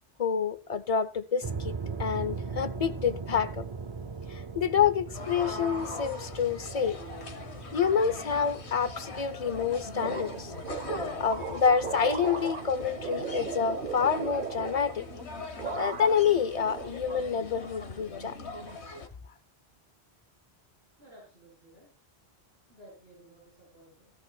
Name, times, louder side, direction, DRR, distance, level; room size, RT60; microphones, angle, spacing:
voice 1, 0.2-3.7 4.3-7.0 7.7-10.5 11.2-15.1 15.7-18.4, left 7 dB, 40° left, 0.8 m, -28 dB
sound 1, 1.4-16.6, right 4 dB, 35° right, 0.5 m, -41 dB
sound 2, 5.1-19.1, left 3 dB, 85° left, 1.6 m, -40 dB
sound 3, 10.0-15.3 15.6-16.3 16.6-17.5, right 6 dB, 50° right, 1.0 m, -37 dB
voice 2, 21.0-21.9 22.7-24.1, right 1 dB, 70° right, 6.7 m, -55 dB
17.0 x 14.5 x 2.3 m
omnidirectional pair, 1.1 m